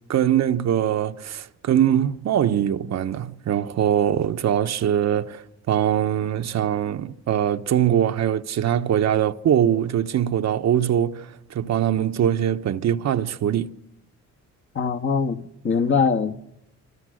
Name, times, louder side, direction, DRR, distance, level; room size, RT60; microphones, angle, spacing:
voice 1, 0.1-13.7, right 10 dB, 60° right, 1.1 m, -22 dB
voice 2, 14.7-16.3, left 5 dB, 40° left, 1.5 m, -22 dB
29.0 x 26.0 x 6.4 m
cardioid pair, 90°, 30 cm